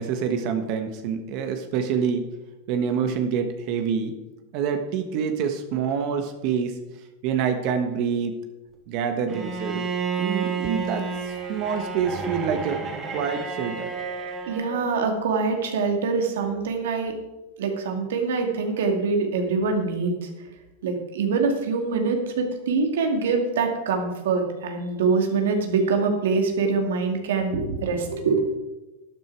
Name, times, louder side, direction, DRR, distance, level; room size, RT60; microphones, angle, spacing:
voice 1, 0.0-2.3 2.7-4.1 4.5-6.8 7.2-8.4 8.9-9.9 10.2-12.8 13.1-13.9, right 7 dB, 50° right, 6 dB, 1.3 m, -26 dB
Bowed string instrument, 9.3-14.8, right 5 dB, 25° right, 2.0 m, -30 dB
voice 2, 14.5-17.1 17.6-20.3 20.8-28.6, right 4 dB, 85° right, 4 dB, 2.4 m, -24 dB
12.0 x 9.5 x 4.7 m, 1.0 s
supercardioid pair, 140°, 0 cm